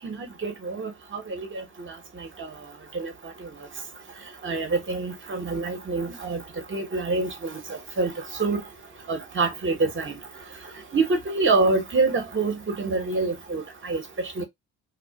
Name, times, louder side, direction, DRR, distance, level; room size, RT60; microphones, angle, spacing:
voice 1, 0.0-1.6 2.4-2.5 2.9-3.1 4.4-6.4 6.7-8.1 8.4-8.6 9.1-10.2 10.9-14.0 14.4-14.5, right 3 dB, 30° right, 1.1 m, -26 dB
2.4 x 2.4 x 2.3 m
supercardioid pair, 65°, 38 cm